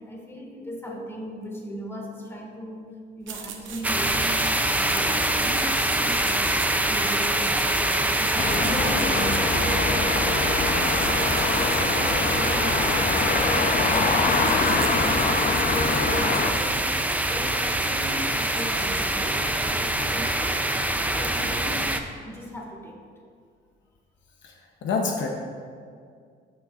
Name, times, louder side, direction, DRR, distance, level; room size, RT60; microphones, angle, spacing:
voice 1, 0.0-6.5 6.8-10.9 11.4-16.9 17.3-20.7 21.1-21.9 22.2-23.0, equal, 10° left, -2 dB, 1.9 m, -37 dB
sound 1, 3.2-19.9, right 7 dB, 75° right, 0.8 m, -41 dB
sound 2, 3.8-22.0, right 1 dB, 10° right, 0.5 m, -24 dB
sound 3, 8.4-16.5, left 4 dB, 45° left, 0.7 m, -25 dB
voice 2, 24.8-25.3, left 4 dB, 70° left, 1 dB, 0.9 m, -26 dB
12.0 x 6.3 x 2.5 m, 2.1 s
cardioid pair, 90°, 20 cm